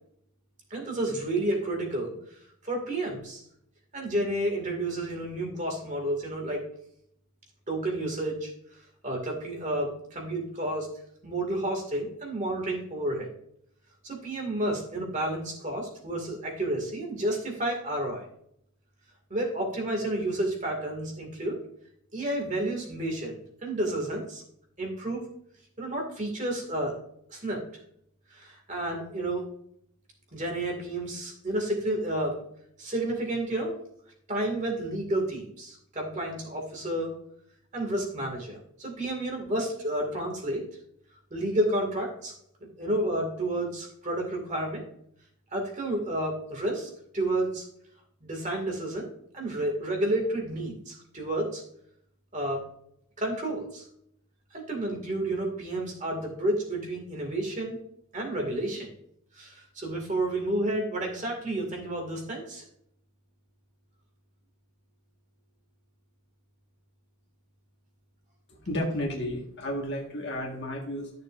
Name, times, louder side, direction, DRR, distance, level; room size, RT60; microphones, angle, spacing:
voice 1, 0.7-2.2 2.6-3.4 3.9-6.7 7.7-8.5 9.0-10.9 11.2-13.3 14.0-18.3 19.3-21.6 22.1-23.3 23.6-24.4 24.8-25.3 25.8-26.9 27.3-27.6 28.3-29.4 30.3-32.4 32.8-33.7 34.3-37.2 37.7-40.6 41.3-42.3 42.8-44.8 45.5-47.7 48.2-49.1 49.3-51.6 52.3-52.6 53.2-53.9 54.5-57.8 58.1-58.9 59.3-62.6, right 1 dB, 35° right, 1 dB, 2.2 m, -30 dB
voice 2, 68.6-71.1, left 1 dB, 55° left, -1 dB, 1.6 m, -32 dB
13.0 x 6.6 x 2.6 m, 0.70 s
head